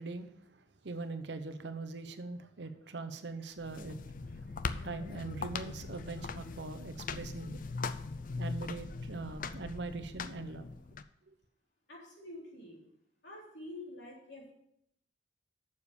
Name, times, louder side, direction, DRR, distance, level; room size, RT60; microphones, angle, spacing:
voice 1, 0.0-4.0 4.8-7.6 8.4-10.7 11.3-11.4, right 3 dB, 65° right, 10 dB, 0.8 m, -42 dB
sound 1, 3.6-11.0, left 4 dB, 50° left, 0.5 m, -40 dB
voice 2, 11.9-12.8 13.2-14.5, left 1 dB, 65° left, -4 dB, 3.9 m, -47 dB
7.1 x 6.8 x 6.6 m, 0.74 s
head